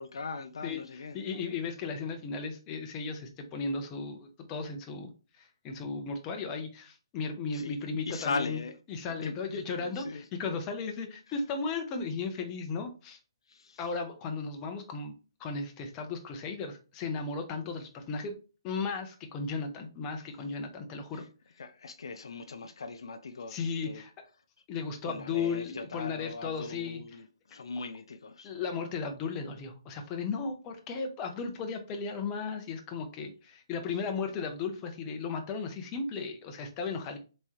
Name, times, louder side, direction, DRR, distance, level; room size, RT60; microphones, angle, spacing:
voice 1, 0.0-1.2 7.5-7.8 8.1-8.7 9.1-10.2 13.5-13.8 21.1-21.2 21.6-24.0 25.0-28.5, left 4 dB, 75° left, 0.4 m, -39 dB
voice 2, 1.1-5.1 5.4-8.6 8.9-13.2 13.8-15.1 15.4-18.4 18.6-21.2 23.5-24.1 24.7-27.2 28.4-37.2, left 4 dB, 20° left, 0.6 m, -35 dB
3.5 x 3.0 x 2.8 m
hypercardioid pair, 150°, 3 cm